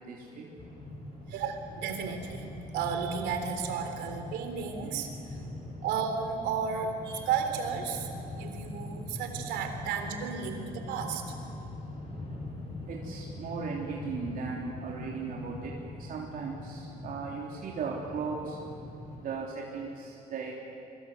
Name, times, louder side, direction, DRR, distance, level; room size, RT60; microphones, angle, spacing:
voice 1, 0.0-1.3 5.4-5.8 8.3-9.2 11.5-20.6, right 4 dB, 55° right, -3 dB, 3.6 m, -39 dB
sound 1, 0.6-19.2, left 2 dB, 30° left, 5.7 m, -42 dB
voice 2, 1.3-2.5 2.7-5.1 5.8-8.1 8.3-11.2, right 6 dB, 90° right, 6 dB, 3.6 m, -33 dB
25.0 x 24.5 x 8.0 m, 2.8 s
cardioid pair, 110°, 17 cm